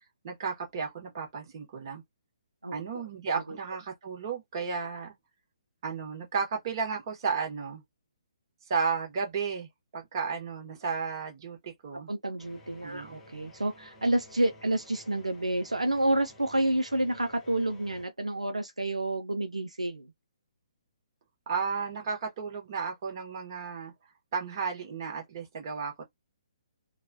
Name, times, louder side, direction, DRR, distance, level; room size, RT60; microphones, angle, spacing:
voice 1, 0.2-2.0 2.7-5.1 5.8-7.8 8.7-12.1 12.8-13.2 21.5-23.9 24.3-26.0, right 5 dB, 40° right, 1.3 m, -33 dB
voice 2, 12.1-20.1, right 1 dB, 85° right, 0.5 m, -29 dB
sound 1, 12.4-18.1, left 1 dB, 10° left, 1.1 m, -53 dB
2.9 x 2.3 x 2.6 m
figure-of-eight pair, 130°, 3 cm